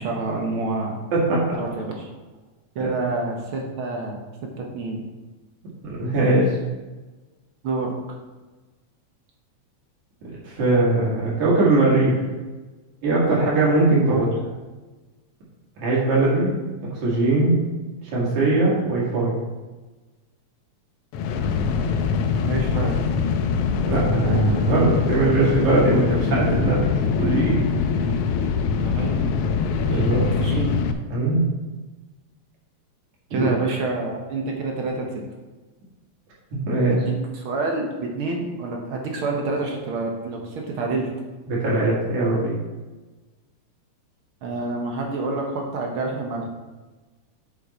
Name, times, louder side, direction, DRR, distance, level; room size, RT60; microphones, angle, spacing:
voice 1, 0.0-1.0 1.5-2.1 2.7-5.0 7.6-7.9 14.1-14.2 22.4-22.9 28.8-29.3 29.9-30.1 30.4-30.8 33.3-35.2 36.9-41.1 44.4-46.5, right 3 dB, 60° right, 1 dB, 1.5 m, -28 dB
voice 2, 1.1-1.6 2.8-2.9 5.8-6.6 10.4-12.2 13.0-14.3 15.8-16.5 17.0-17.6 18.0-19.4 23.9-27.6 28.0-28.1 29.9-30.2 31.1-31.4 33.3-33.5 36.7-37.0 41.5-42.5, right 2 dB, 90° right, -6 dB, 3.5 m, -20 dB
sound 1, 21.1-30.9, left 5 dB, 85° left, 1.3 m, -23 dB
7.2 x 6.6 x 4.2 m, 1.2 s
omnidirectional pair, 3.3 m